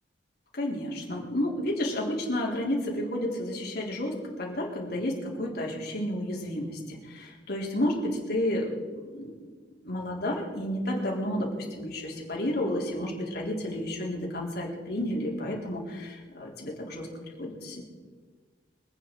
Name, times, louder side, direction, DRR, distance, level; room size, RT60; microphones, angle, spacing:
voice 1, 0.5-8.7 9.1-9.3 9.8-17.1 17.4-17.8, left 1 dB, 60° left, -2 dB, 3.8 m, -31 dB
26.5 x 9.4 x 4.7 m, 1.5 s
head